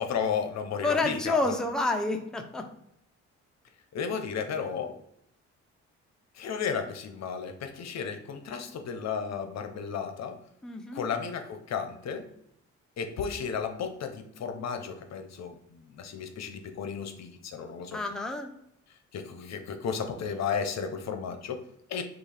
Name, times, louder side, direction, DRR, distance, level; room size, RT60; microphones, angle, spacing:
voice 1, 0.0-1.5 3.9-5.0 6.3-10.4 10.9-12.3 13.0-18.0 19.1-22.0, left 6 dB, 60° left, 6 dB, 0.7 m, -33 dB
voice 2, 0.8-2.7 10.6-11.1 17.9-18.5, left 2 dB, ahead, 3 dB, 0.6 m, -29 dB
6.0 x 2.4 x 3.3 m, 0.75 s
cardioid pair, 90°, 30 cm